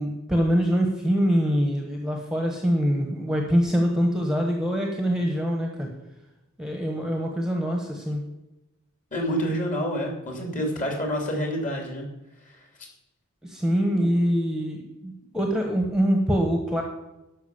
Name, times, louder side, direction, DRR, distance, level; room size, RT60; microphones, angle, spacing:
voice 1, 0.0-5.9 6.6-8.2 13.4-16.8, equal, 5° right, 2 dB, 1.2 m, -24 dB
voice 2, 9.1-12.0 13.9-14.1, equal, 35° left, 1 dB, 3.0 m, -28 dB
12.0 x 6.0 x 7.2 m, 0.96 s
head